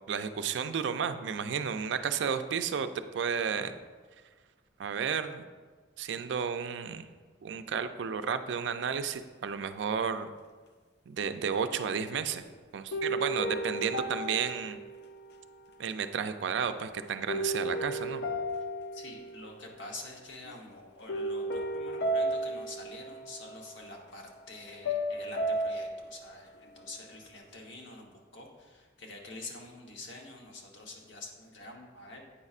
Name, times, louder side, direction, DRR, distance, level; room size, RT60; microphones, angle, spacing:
voice 1, 0.1-2.9 3.1-3.7 4.8-5.5 6.0-7.1 7.4-10.3 11.1-12.4 12.7-14.8 15.8-18.2, right 7 dB, 65° right, 10 dB, 0.3 m, -32 dB
sound 1, 11.8-12.5 12.9-15.6 17.3-19.8 20.1-20.5 21.1-23.8 24.8-26.3, right 1 dB, 65° left, 0.6 m, -34 dB
voice 2, 18.9-32.2, left 2 dB, 85° left, 0 dB, 1.0 m, -47 dB
8.6 x 5.3 x 2.4 m, 1.4 s
head